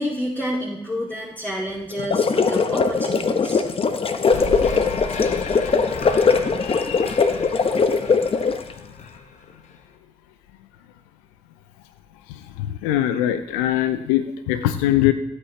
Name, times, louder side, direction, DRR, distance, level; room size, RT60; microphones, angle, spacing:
voice 1, 0.0-3.6, equal, 15° left, -5 dB, 2.6 m, -29 dB
sound 1, 1.9-8.7, left 5 dB, 45° left, 1.0 m, -20 dB
sound 2, 4.3-9.8, left 4 dB, 65° left, 1.2 m, -33 dB
voice 2, 6.6-7.1 12.3-15.1, left 13 dB, 85° left, 11 dB, 0.4 m, -23 dB
15.5 x 8.1 x 3.2 m, 0.84 s
hypercardioid pair, 40°, 13 cm